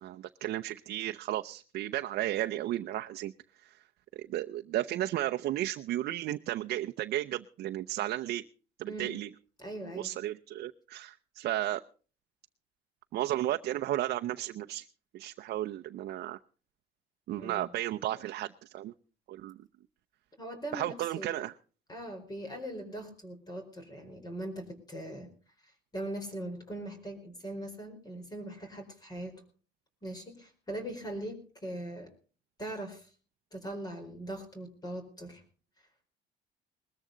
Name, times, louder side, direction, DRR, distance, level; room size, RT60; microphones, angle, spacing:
voice 1, 0.0-3.3 3.6-3.8 4.1-8.4 8.8-9.3 9.9-11.8 13.1-14.9 15.1-16.4 17.3-18.9 19.3-19.6 20.7-21.5, right 14 dB, 70° right, 7 dB, 0.7 m, -34 dB
voice 2, 9.6-10.1 17.4-17.7 20.4-21.4 21.9-25.3 25.9-29.4 30.0-32.1 32.6-33.1 33.5-35.4, right 1 dB, 25° left, 5 dB, 4.4 m, -40 dB
20.5 x 14.0 x 3.9 m, 0.39 s
cardioid pair, 110°, 17 cm